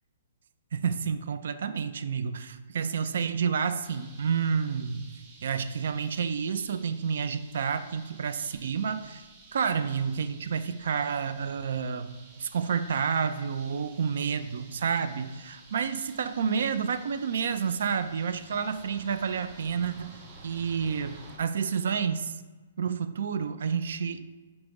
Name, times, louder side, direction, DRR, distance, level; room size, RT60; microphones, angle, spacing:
voice 1, 0.7-5.1 5.4-9.2 9.5-20.2 20.4-22.4 22.8-24.3, right 6 dB, 55° right, 11 dB, 0.3 m, -29 dB
sound 1, 3.8-21.4, right 3 dB, 25° right, 0.6 m, -52 dB
5.0 x 2.9 x 3.6 m, 1.3 s
hypercardioid pair, 170°, 0 cm